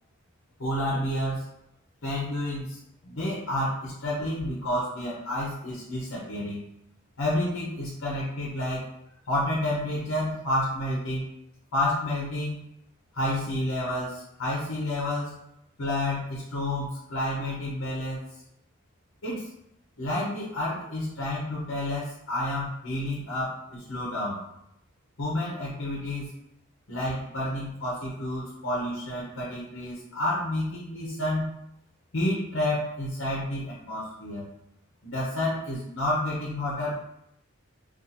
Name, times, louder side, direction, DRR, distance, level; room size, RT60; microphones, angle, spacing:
voice 1, 0.6-1.4 2.0-2.8 3.0-6.6 7.2-8.8 9.3-11.3 11.7-12.6 13.1-15.4 15.8-18.3 19.2-19.5 20.0-24.4 25.2-26.3 26.9-31.5 32.1-34.4 35.0-36.9, left 1 dB, 65° left, -5 dB, 0.8 m, -30 dB
2.7 x 2.5 x 4.0 m, 0.80 s
head